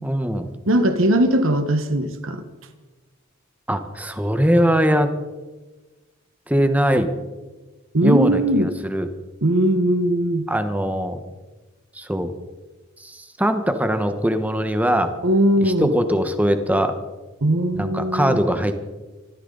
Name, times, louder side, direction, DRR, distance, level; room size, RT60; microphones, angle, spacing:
voice 1, 0.0-0.5 3.7-5.1 6.5-7.1 8.0-9.1 10.5-11.2 11.9-12.3 13.0-15.1 15.6-17.0 17.7-18.8, equal, 5° right, 8 dB, 1.2 m, -21 dB
voice 2, 0.7-2.4 7.9-8.7 9.4-10.5 15.2-15.9 17.4-18.4, right 1 dB, 70° right, 8 dB, 1.4 m, -19 dB
25.5 x 14.0 x 4.0 m, 1.2 s
head